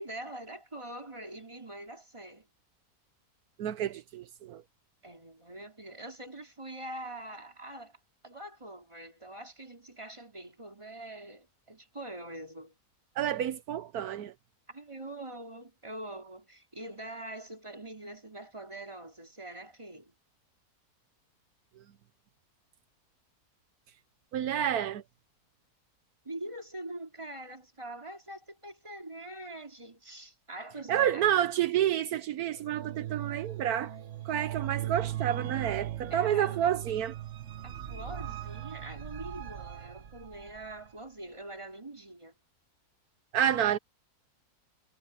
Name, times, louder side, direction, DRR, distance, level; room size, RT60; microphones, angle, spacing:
voice 1, 0.0-2.5 5.0-8.0 8.2-12.7 14.7-20.2 26.3-31.3 36.1-36.6 37.6-42.3, right 1 dB, 20° right, 3.4 m, -44 dB
voice 2, 3.6-4.6 13.2-14.3 24.3-25.0 30.9-33.9 34.2-37.1 43.3-43.8, right 10 dB, 80° right, 1.3 m, -29 dB
sound 1, 32.6-40.9, right 12 dB, 55° right, 1.2 m, -38 dB
omnidirectional pair, 1.6 m